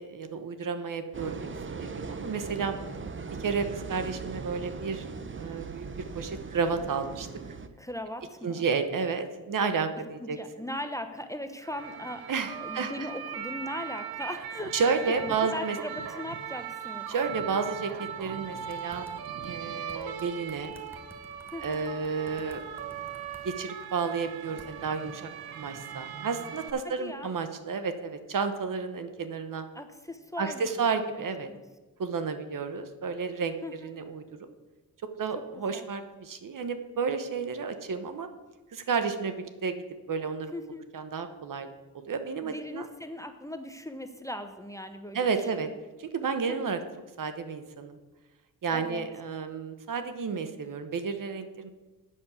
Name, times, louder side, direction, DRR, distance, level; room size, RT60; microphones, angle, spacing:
voice 1, 0.0-2.7 3.4-5.0 5.3-5.9 6.1-7.3 8.4-10.4 12.3-12.9 14.7-15.8 17.1-19.1 19.4-20.7 21.6-22.6 23.4-25.3 25.6-29.6 30.4-31.5 32.0-34.2 35.2-38.3 38.7-40.5 40.9-41.7 42.1-42.9 45.1-45.7 46.0-46.8 47.2-48.0 48.6-51.7, right 5 dB, 60° right, 9 dB, 1.1 m, -31 dB
sound 1, 1.1-7.7, right 4 dB, 35° right, 0.8 m, -39 dB
voice 2, 7.8-8.6 10.2-12.3 12.6-17.1 21.5-21.8 26.8-27.3 29.7-31.6 33.6-33.9 35.7-35.8 40.5-40.9 42.4-45.8 46.5-46.8 48.7-49.1, left 1 dB, 10° left, 7 dB, 0.8 m, -39 dB
sound 2, 11.6-26.7, right 8 dB, 85° right, 0.9 m, -39 dB
sound 3, 18.4-19.5 19.9-23.4 24.6-24.7, equal, 5° right, 1.4 m, -53 dB
8.5 x 6.4 x 7.1 m, 1.2 s
cardioid pair, 75°, 36 cm